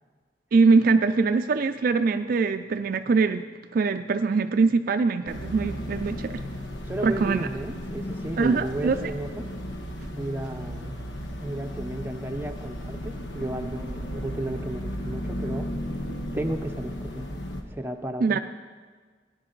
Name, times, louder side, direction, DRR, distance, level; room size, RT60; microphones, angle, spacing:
voice 1, 0.5-3.4 3.7-6.4 7.0-7.5 8.4-9.0 18.2-18.4, right 4 dB, 50° right, 9 dB, 0.4 m, -22 dB
sound 1, 5.3-17.6, equal, 85° left, 1.3 m, -35 dB
voice 2, 6.9-9.5 10.2-11.0 11.4-15.7 16.3-17.4 17.7-18.4, right 1 dB, 10° right, 4 dB, 0.7 m, -33 dB
16.5 x 10.0 x 3.9 m, 1.5 s
head